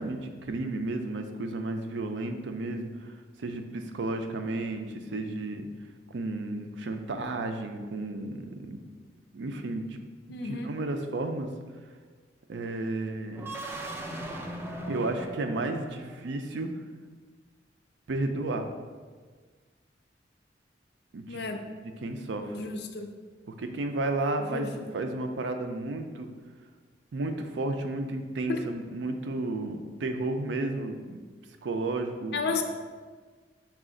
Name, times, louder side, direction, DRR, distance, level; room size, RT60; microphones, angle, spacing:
voice 1, 0.0-3.1 3.4-5.7 6.1-8.8 9.3-10.0 10.4-11.5 12.5-13.5 14.9-16.7 18.1-18.7 21.1-21.4 22.0-22.5 23.5-26.3 27.1-31.2 31.6-32.5, right 2 dB, 80° right, 6 dB, 0.4 m, -32 dB
voice 2, 10.3-10.7 21.3-21.6 22.4-23.1 24.4-24.9 28.5-28.6 32.3-32.6, left 4 dB, 65° left, 5 dB, 0.4 m, -33 dB
sound 1, 13.3-16.3, right 1 dB, 15° right, 0.3 m, -39 dB
5.8 x 2.4 x 3.7 m, 1.5 s
head